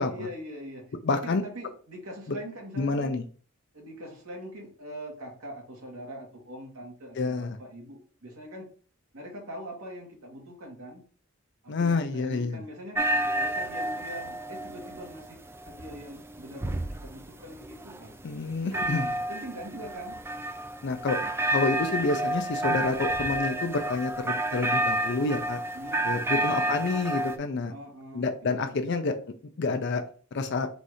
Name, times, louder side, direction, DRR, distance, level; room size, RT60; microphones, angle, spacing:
voice 1, 0.0-3.1 3.7-8.7 9.1-11.0 11.6-13.0 13.4-18.1 18.6-20.2 25.7-26.8 27.7-28.8, equal, 80° right, 0 dB, 1.6 m, -42 dB
voice 2, 1.0-1.4 2.3-2.4 2.8-3.2 7.2-7.6 11.7-12.6 18.2-19.0 20.8-21.2 21.5-25.6 26.0-27.7 28.1-29.2 29.6-30.0 30.3-30.7, left 3 dB, 55° left, 6 dB, 0.4 m, -28 dB
sound 1, 12.9-27.4, right 1 dB, 10° right, 0.3 m, -30 dB
4.0 x 2.7 x 4.8 m, 0.42 s
head